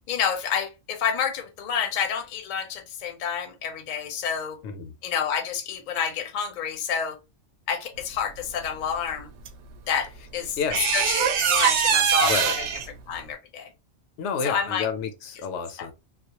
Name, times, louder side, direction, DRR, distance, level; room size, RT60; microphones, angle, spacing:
voice 1, 0.1-4.6 5.0-7.2 7.7-9.3 9.9-10.6 10.9-12.5 13.1-13.7 14.4-14.9, left 7 dB, 50° left, 0.6 m, -29 dB
voice 2, 4.6-4.9 10.5-10.9 12.2-12.6 14.2-15.9, left 6 dB, 85° left, 0.9 m, -30 dB
sound 1, 9.5-9.6 10.7-12.9, right 7 dB, 75° right, 0.8 m, -22 dB
2.3 x 2.0 x 2.8 m
omnidirectional pair, 1.2 m